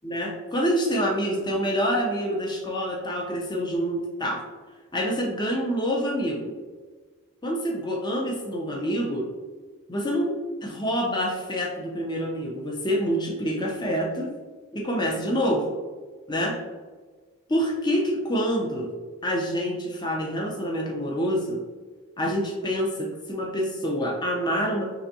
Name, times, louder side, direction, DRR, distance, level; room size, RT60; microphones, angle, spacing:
voice 1, 0.0-4.4 4.9-6.5 7.4-9.2 9.9-10.3 10.6-14.3 14.7-15.6 16.3-16.5 17.5-18.9 19.2-21.6 22.2-24.8, equal, 20° left, -1 dB, 0.7 m, -26 dB
5.6 x 3.5 x 2.7 m, 1.4 s
head